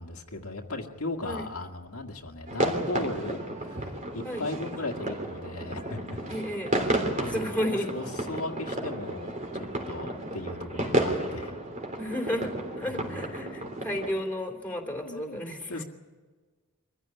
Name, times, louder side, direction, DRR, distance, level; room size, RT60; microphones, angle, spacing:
voice 1, 0.0-6.4 6.7-6.8 7.1-11.6 12.8-13.3 14.9-15.4 15.7-15.8, left 2 dB, 70° left, 2 dB, 1.9 m, -37 dB
sound 1, 2.5-14.1, right 1 dB, 35° right, 3.6 m, -32 dB
voice 2, 6.3-6.8 7.3-7.9 12.0-12.5 12.8-15.8, equal, 5° left, 2 dB, 3.0 m, -32 dB
24.5 x 15.0 x 9.9 m, 1.4 s
head